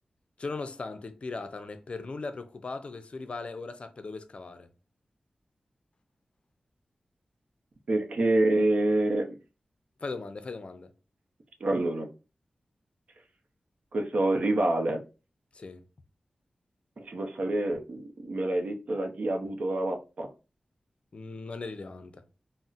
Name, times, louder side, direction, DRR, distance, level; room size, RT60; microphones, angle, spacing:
voice 1, 0.4-4.7 10.0-10.9 15.5-15.8 21.1-22.2, left 3 dB, 55° left, 0.4 m, -38 dB
voice 2, 7.9-9.3 11.6-12.1 13.9-15.0 17.0-20.3, right 2 dB, 75° right, 0.6 m, -27 dB
3.9 x 2.0 x 2.4 m
wide cardioid pair, 80°, 2 cm